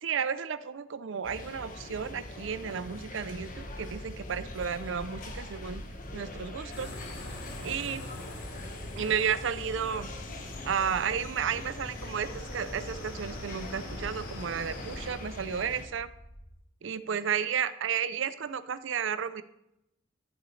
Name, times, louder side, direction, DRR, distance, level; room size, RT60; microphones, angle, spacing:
voice 1, 0.0-5.8 6.1-6.9 7.6-8.0 9.0-10.1 10.6-16.1 16.8-19.4, right 7 dB, 70° right, 14 dB, 0.5 m, -32 dB
sound 1, 1.2-15.9, left 2 dB, 45° left, 1.3 m, -43 dB
sound 2, 2.8-16.5, equal, 20° left, 2.2 m, -48 dB
sound 3, 6.7-15.2, left 1 dB, 85° left, 4.3 m, -44 dB
14.5 x 7.7 x 3.2 m, 0.83 s
head